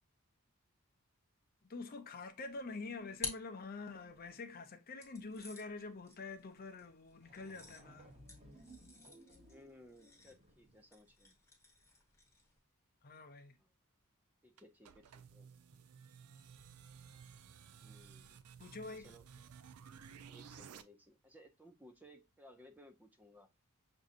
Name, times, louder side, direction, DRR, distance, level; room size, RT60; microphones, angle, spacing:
voice 1, 1.7-8.1 13.0-13.5 18.6-19.1, left 3 dB, 40° left, 0.6 m, -46 dB
sound 1, 2.5-4.3 5.0-12.6, left 4 dB, 10° left, 1.0 m, -51 dB
sound 2, 6.8-6.9 7.1-10.9, right 1 dB, 30° right, 0.9 m, -60 dB
voice 2, 9.5-11.4 13.6-13.7 14.4-15.5 17.7-18.4 18.9-19.2 20.3-23.6, equal, 10° right, 0.4 m, -60 dB
sound 3, 14.6-20.8, right 7 dB, 85° right, 0.4 m, -55 dB
6.1 x 2.7 x 2.4 m
head